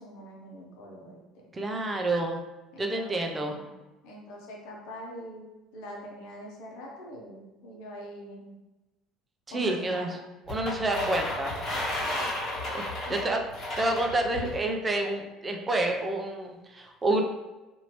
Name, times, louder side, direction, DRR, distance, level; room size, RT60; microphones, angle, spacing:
voice 1, 0.0-1.5 2.7-3.8 4.0-5.5 5.7-8.5 9.5-10.2 11.9-12.4 13.1-13.2, equal, 70° left, -1 dB, 0.8 m, -44 dB
voice 2, 1.5-2.4 2.8-3.5 9.5-10.2 10.5-11.5 12.7-12.8 13.1-13.4 13.8-17.2, right 2 dB, 25° right, 3 dB, 0.5 m, -28 dB
sound 1, 10.5-14.6, left 1 dB, 50° left, 1.4 m, -33 dB
2.8 x 2.6 x 3.0 m, 1.1 s
hypercardioid pair, 70°, 0 cm